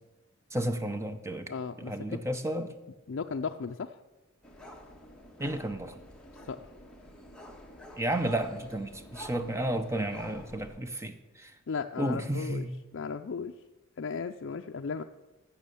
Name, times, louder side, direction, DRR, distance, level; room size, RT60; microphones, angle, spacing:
voice 1, 0.5-1.5 1.8-2.7 5.4-6.0 8.0-11.5 12.0-12.8, right 1 dB, 10° right, 9 dB, 0.7 m, -32 dB
voice 2, 1.5-2.2 3.1-4.0 6.5-6.6 11.7-12.7 12.9-13.5 14.0-15.0, left 5 dB, 55° left, 4 dB, 0.4 m, -35 dB
sound 1, 4.4-10.8, equal, 5° left, 1.4 m, -49 dB
15.5 x 6.2 x 6.9 m, 1.2 s
head